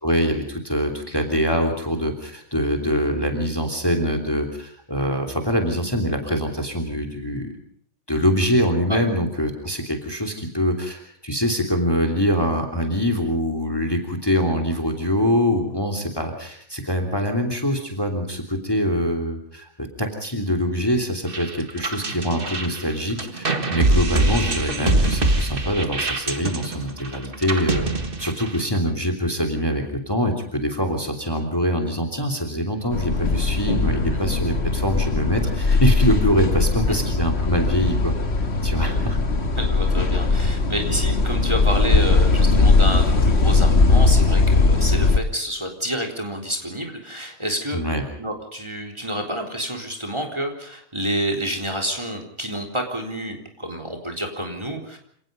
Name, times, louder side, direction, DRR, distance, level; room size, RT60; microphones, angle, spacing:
voice 1, 0.0-7.5 8.1-27.9 28.2-38.1 38.6-39.2 47.7-48.1, equal, 15° left, 5 dB, 3.1 m, -24 dB
sound 1, 21.3-28.8, right 2 dB, 40° right, 2.0 m, -24 dB
sound 2, 32.9-45.2, left 3 dB, 50° left, 1.9 m, -19 dB
voice 2, 39.6-47.8 48.2-55.0, equal, 20° right, 4 dB, 4.0 m, -29 dB
28.5 x 18.5 x 5.3 m, 0.62 s
omnidirectional pair, 1.4 m